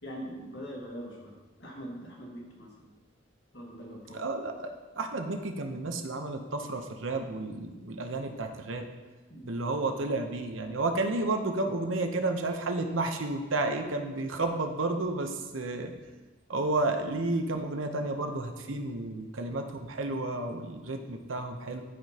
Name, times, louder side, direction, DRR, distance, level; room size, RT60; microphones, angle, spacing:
voice 1, 0.0-2.9 3.5-4.3 9.3-9.5, equal, 60° left, -2 dB, 1.8 m, -43 dB
voice 2, 4.1-8.9 9.4-15.9 16.5-21.8, right 2 dB, 85° right, 5 dB, 0.8 m, -31 dB
12.5 x 5.1 x 2.9 m, 1.3 s
head